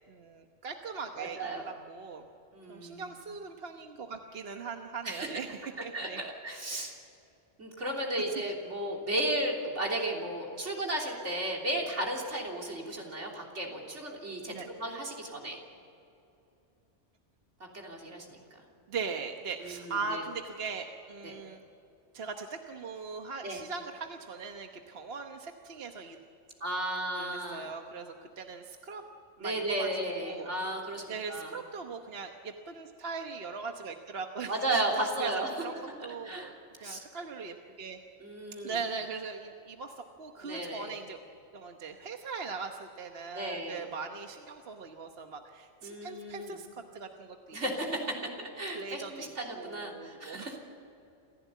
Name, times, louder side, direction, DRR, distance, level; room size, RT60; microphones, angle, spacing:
voice 1, 0.1-2.2 2.7-6.2 14.5-14.7 18.9-21.6 22.1-26.2 27.2-29.0 29.4-29.9 30.1-30.5 31.1-34.6 35.2-35.3 35.6-36.5 36.8-38.0 38.6-39.9 40.2-41.2 41.5-46.7 46.9-47.6 48.7-49.3 49.6-50.6, right 5 dB, 60° right, 4 dB, 1.3 m, -40 dB
voice 2, 1.2-1.6 2.5-3.1 5.0-5.3 5.9-6.9 7.6-15.6 17.7-18.4 19.6-20.2 21.2-21.3 23.4-23.6 26.6-27.7 29.4-31.5 34.5-35.6 36.2-37.0 38.2-38.8 40.4-40.9 43.3-43.8 45.8-46.6 47.5-50.6, right 1 dB, 80° right, 0 dB, 3.7 m, -34 dB
27.5 x 15.5 x 8.4 m, 2.8 s
omnidirectional pair, 1.2 m